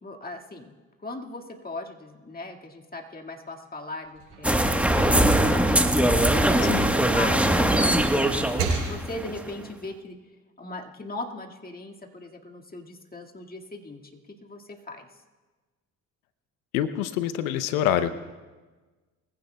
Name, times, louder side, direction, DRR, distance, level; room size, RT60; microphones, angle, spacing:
voice 1, 0.0-0.8 1.0-10.2 10.6-15.2, left 2 dB, 20° left, 1 dB, 2.0 m, -39 dB
sound 1, 4.0-7.2 7.7-9.5, right 4 dB, 70° right, 4.6 m, -35 dB
sound 2, 4.4-9.5, right 1 dB, 5° right, 1.2 m, -21 dB
voice 2, 6.6-6.9 16.7-18.1, left 10 dB, 85° left, 13 dB, 0.8 m, -26 dB
22.5 x 16.0 x 2.3 m, 1.3 s
hypercardioid pair, 55°, 41 cm